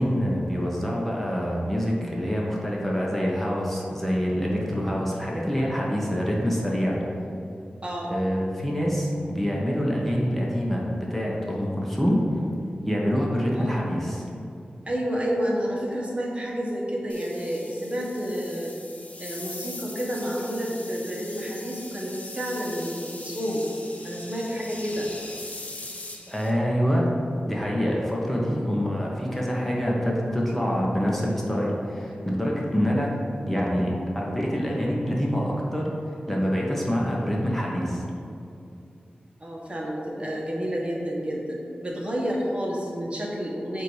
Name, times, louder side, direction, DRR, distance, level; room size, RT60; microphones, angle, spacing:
voice 1, 0.0-7.0 8.1-12.2 12.8-14.3 26.3-27.1 27.5-33.1 33.5-38.0, equal, 5° left, -3 dB, 1.0 m, -26 dB
voice 2, 7.8-8.2 13.5-13.9 14.8-18.7 19.2-23.7 24.0-25.1 28.4-28.8 39.4-43.8, equal, 35° right, -3 dB, 1.2 m, -30 dB
sound 1, 17.1-26.5, left 2 dB, 45° left, 0.9 m, -41 dB
7.5 x 2.7 x 4.8 m, 2.6 s
cardioid pair, 50°, 3 cm